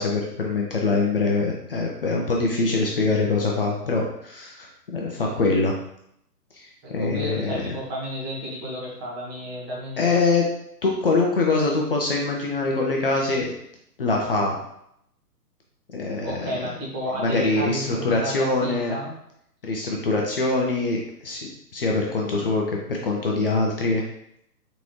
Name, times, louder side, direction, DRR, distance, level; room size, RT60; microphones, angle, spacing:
voice 1, 0.0-5.8 6.5-7.8 10.0-10.5 10.8-13.5 14.0-14.6 15.9-16.7 17.1-19.0 19.6-24.0, left 3 dB, 35° left, -1 dB, 0.6 m, -24 dB
voice 2, 6.8-10.2 16.2-19.1, equal, 15° right, -6 dB, 0.9 m, -32 dB
3.9 x 3.6 x 3.1 m, 0.75 s
figure-of-eight pair, 135°, 48 cm